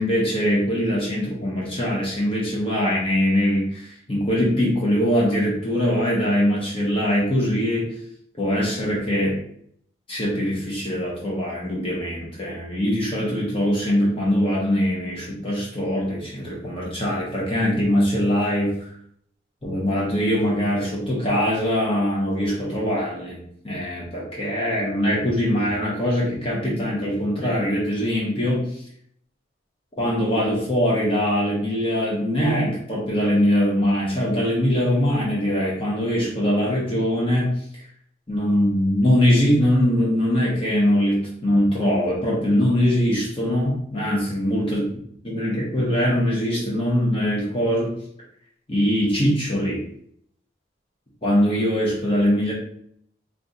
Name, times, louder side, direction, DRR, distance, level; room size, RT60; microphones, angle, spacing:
voice 1, 0.0-8.0 8.4-9.4 10.1-18.9 19.6-23.4 23.6-28.7 30.0-37.5 38.3-44.8 45.2-48.0 48.7-49.8 51.2-52.5, equal, 30° left, -5 dB, 0.9 m, -22 dB
3.7 x 2.5 x 2.7 m, 0.66 s
head